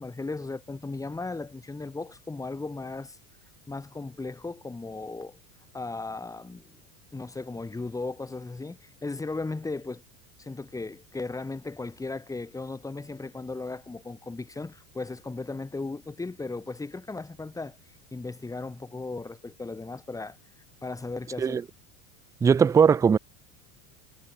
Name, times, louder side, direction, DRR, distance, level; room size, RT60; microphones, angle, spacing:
voice 1, 0.0-3.2 3.7-5.4 5.7-6.8 7.1-10.0 10.4-17.8 18.1-20.4 20.8-21.6, left 3 dB, 5° left, 1.5 m, -36 dB
voice 2, 22.4-23.2, right 6 dB, 10° right, 0.3 m, -19 dB
supercardioid pair, 145°, 44 cm